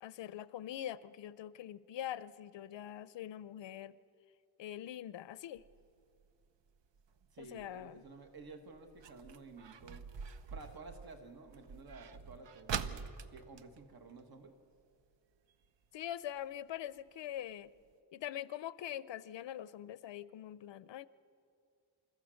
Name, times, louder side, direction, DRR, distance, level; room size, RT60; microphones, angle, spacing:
voice 1, 0.0-4.0 4.6-5.6 7.4-8.0 15.9-17.7 18.1-21.1, left 11 dB, 90° left, 17 dB, 0.6 m, -43 dB
sound 1, 5.6-14.8 15.1-15.2 15.5-15.9 16.4-16.5 17.0-17.1 17.4-17.5 17.8-17.9, right 7 dB, 90° right, 0.8 m, -46 dB
voice 2, 7.3-10.0 10.5-14.5, right 3 dB, 55° right, 5 dB, 1.6 m, -52 dB
28.5 x 14.0 x 6.4 m, 2.4 s
wide cardioid pair, 145°, 42 cm